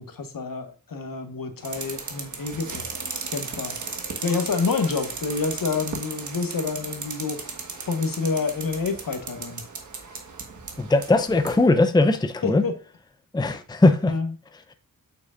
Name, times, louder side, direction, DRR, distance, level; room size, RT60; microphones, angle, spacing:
voice 1, 0.0-2.9 3.3-3.8 4.2-7.4 7.9-9.6 12.4-12.7 14.1-14.3, left 4 dB, 70° left, 1.4 m, -28 dB
sound 1, 1.6-11.6, right 4 dB, 55° right, 1.4 m, -36 dB
voice 2, 10.8-12.6 13.3-14.1, left 2 dB, 10° left, 0.6 m, -19 dB
7.9 x 6.1 x 2.5 m
wide cardioid pair, 120°, 34 cm